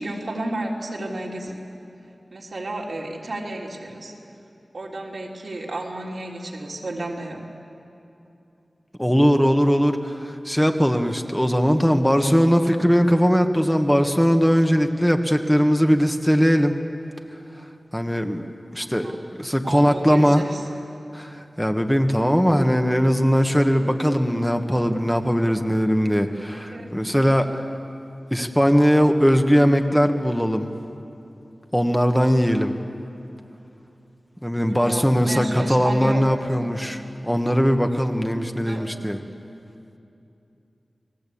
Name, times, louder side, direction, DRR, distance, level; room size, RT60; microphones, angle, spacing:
voice 1, 0.0-1.6 2.3-4.1 4.7-7.4 19.0-19.2 19.6-20.6 26.5-26.9 34.7-36.2 38.5-38.8, right 1 dB, 80° right, -2 dB, 3.6 m, -32 dB
voice 2, 9.0-16.7 17.9-18.4 18.7-19.1 19.4-20.4 21.1-27.7 28.3-30.7 31.7-32.7 34.4-39.2, equal, 5° left, 4 dB, 1.5 m, -20 dB
30.0 x 19.0 x 8.7 m, 2.8 s
wide cardioid pair, 70°, 0 cm